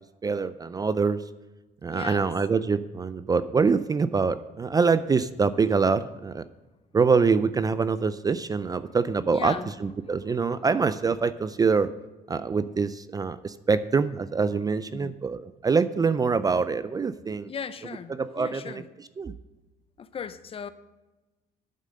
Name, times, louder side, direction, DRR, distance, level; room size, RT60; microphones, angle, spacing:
voice 1, 0.2-1.2 1.8-6.4 6.9-11.9 12.3-17.5 18.2-18.8 19.2-19.3, right 5 dB, 20° right, 0.4 m, -25 dB
voice 2, 1.9-2.3 8.8-9.0 9.3-9.7 10.0-10.7 14.9-15.1 17.5-18.9 20.0-20.7, left 6 dB, 35° left, 0.6 m, -38 dB
9.2 x 7.3 x 6.4 m
cardioid pair, 110°, 17 cm